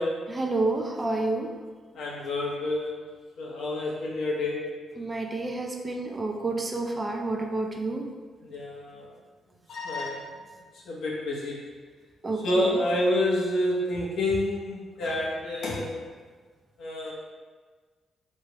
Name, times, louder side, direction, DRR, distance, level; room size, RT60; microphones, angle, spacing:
voice 1, 0.3-1.5 5.0-8.1 12.2-12.8, right 2 dB, 30° right, 2 dB, 0.5 m, -29 dB
voice 2, 1.9-3.0 3.4-4.7 8.4-9.1 9.7-10.3 10.8-11.7 12.4-16.1 16.8-17.1, left 1 dB, 75° left, -4 dB, 1.1 m, -28 dB
4.4 x 3.4 x 3.0 m, 1.4 s
cardioid pair, 75°, 0 cm